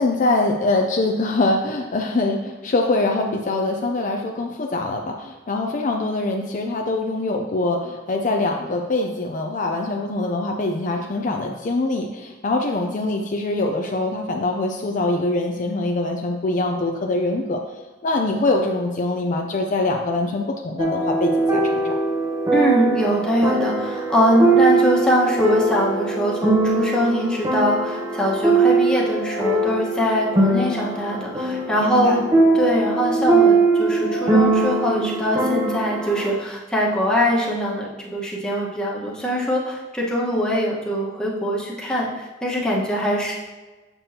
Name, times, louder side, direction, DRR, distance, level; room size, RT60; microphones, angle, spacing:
voice 1, 0.0-17.6 18.0-22.0 31.8-32.2, left 2 dB, 45° left, 2 dB, 0.5 m, -23 dB
sound 1, 20.8-36.3, right 3 dB, 20° right, 0.8 m, -21 dB
voice 2, 22.5-32.2 32.5-43.4, equal, 5° left, -5 dB, 1.3 m, -22 dB
7.2 x 6.7 x 2.8 m, 1.2 s
head